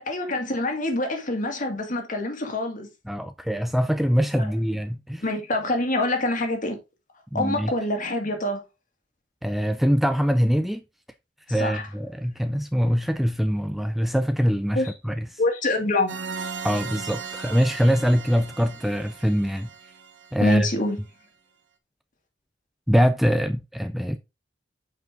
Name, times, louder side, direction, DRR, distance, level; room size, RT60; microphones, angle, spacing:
voice 1, 0.0-2.9 4.4-4.5 5.2-6.8 7.3-8.6 11.5-11.9 14.8-14.9 15.4-16.1 20.4-21.0, left 2 dB, 45° left, 2.0 m, -26 dB
voice 2, 3.1-5.2 7.3-7.7 9.4-10.8 11.5-15.3 16.6-19.7 20.3-20.7 22.9-24.2, equal, ahead, 0.3 m, -23 dB
sound 1, 16.1-20.7, right 5 dB, 80° right, 1.0 m, -37 dB
7.8 x 5.1 x 3.7 m
head